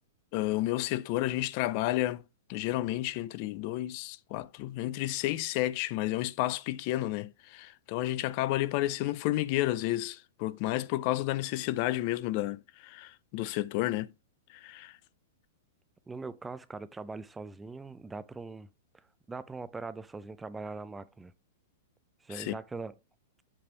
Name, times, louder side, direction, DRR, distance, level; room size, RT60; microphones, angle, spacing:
voice 1, 0.3-2.2 2.5-14.1 14.5-14.9 22.3-22.5, left 16 dB, 50° left, 0.4 m, -31 dB
voice 2, 16.1-18.7 18.9-21.3 22.2-22.9, right 3 dB, 10° right, 0.4 m, -41 dB
7.5 x 3.3 x 4.6 m
hypercardioid pair, 125°, 0 cm